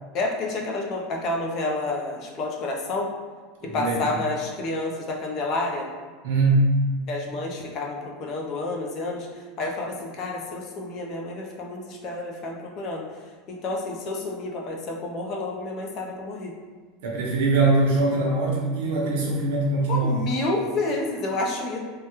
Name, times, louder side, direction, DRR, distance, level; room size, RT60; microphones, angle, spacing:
voice 1, 0.1-3.1 3.7-5.9 7.1-9.3 9.6-13.0 13.5-16.5 19.9-21.8, left 2 dB, 35° left, 0 dB, 0.4 m, -29 dB
voice 2, 3.6-4.0 6.2-6.7 17.0-20.2, right 2 dB, 75° right, -2 dB, 0.8 m, -22 dB
3.3 x 2.2 x 2.8 m, 1.5 s
supercardioid pair, 165°, 0 cm